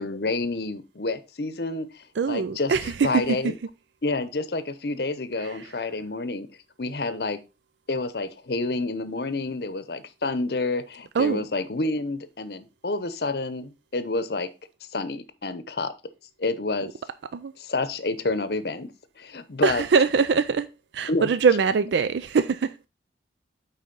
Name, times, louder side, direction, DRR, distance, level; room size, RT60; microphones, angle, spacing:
voice 1, 0.0-2.7 3.0-3.5 4.0-6.5 6.8-7.4 7.9-14.5 14.9-15.9 16.4-16.9 17.6-18.9 19.2-19.8 21.1-21.3, left 2 dB, 60° left, 0.8 m, -29 dB
voice 2, 2.2-3.5 5.4-5.7 11.1-11.5 17.3-17.5 19.6-20.7 20.9-22.8, right 5 dB, 80° right, 0.4 m, -23 dB
9.7 x 4.1 x 3.9 m
head